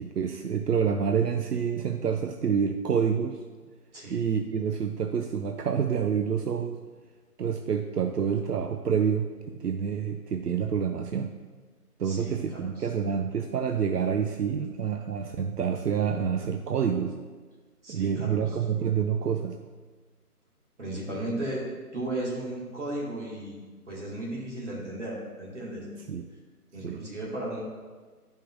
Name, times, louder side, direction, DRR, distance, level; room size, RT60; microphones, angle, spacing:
voice 1, 0.0-3.4 4.1-6.8 7.4-11.3 12.0-17.1 17.9-19.6 26.1-26.3 26.8-27.0, right 7 dB, 85° right, 5 dB, 0.6 m, -28 dB
voice 2, 3.9-4.2 12.0-12.9 17.8-18.6 20.8-21.7 21.9-23.6 23.9-25.9 26.7-27.6, right 1 dB, 50° right, -5 dB, 2.0 m, -35 dB
9.1 x 5.2 x 2.5 m, 1.4 s
figure-of-eight pair, 150°, 46 cm